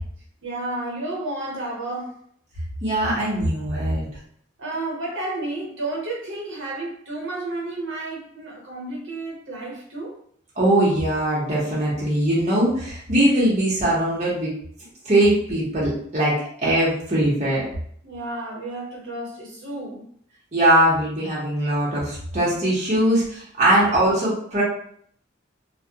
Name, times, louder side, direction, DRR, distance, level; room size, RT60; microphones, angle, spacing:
voice 1, 0.4-2.2 3.3-3.4 4.6-10.1 18.0-20.1, right 2 dB, 75° right, -3 dB, 0.8 m, -31 dB
voice 2, 2.8-4.1 10.6-14.5 15.0-16.4 16.6-17.6 20.5-24.6, right 1 dB, 35° right, -7 dB, 0.8 m, -21 dB
2.3 x 2.1 x 2.7 m, 0.63 s
head